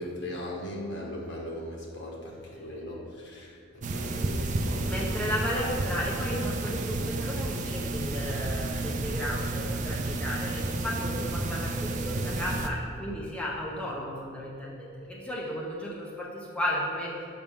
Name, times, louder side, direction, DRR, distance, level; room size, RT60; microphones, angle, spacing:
voice 1, 0.0-4.9 10.8-10.9, left 1 dB, 65° left, -3 dB, 1.4 m, -38 dB
sound 1, 3.8-12.7, right 2 dB, 40° right, 0.4 m, -31 dB
voice 2, 4.9-17.1, equal, 5° left, -5 dB, 0.7 m, -34 dB
6.7 x 5.8 x 3.6 m, 2.4 s
head